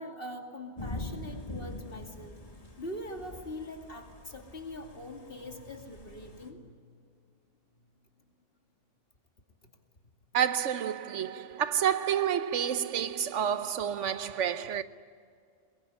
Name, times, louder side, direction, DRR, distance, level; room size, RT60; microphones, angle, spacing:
voice 1, 0.0-2.4 2.8-6.8, left 1 dB, 50° left, 2.7 m, -42 dB
Thunder / Rain, 0.8-6.5, left 1 dB, 30° left, 2.1 m, -43 dB
voice 2, 10.3-14.8, right 9 dB, 80° right, 1.1 m, -29 dB
23.0 x 22.0 x 9.8 m
omnidirectional pair, 1.2 m